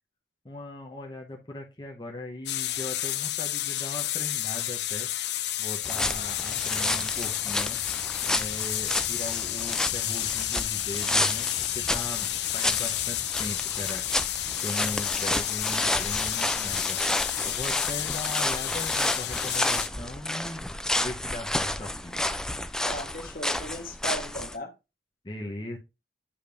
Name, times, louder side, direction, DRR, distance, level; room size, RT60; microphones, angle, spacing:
voice 1, 0.4-5.1 5.6-7.8 8.3-14.0 14.6-17.0 17.4-20.7 21.0-22.2 25.2-25.8, left 1 dB, 25° left, 0.9 m, -39 dB
sound 1, 2.5-19.9, left 14 dB, 75° left, 0.5 m, -31 dB
sound 2, 5.8-24.6, left 1 dB, 5° left, 0.3 m, -31 dB
voice 2, 6.0-6.7 14.7-14.9 22.8-24.7, left 1 dB, 55° left, 1.2 m, -38 dB
8.6 x 5.1 x 2.5 m
head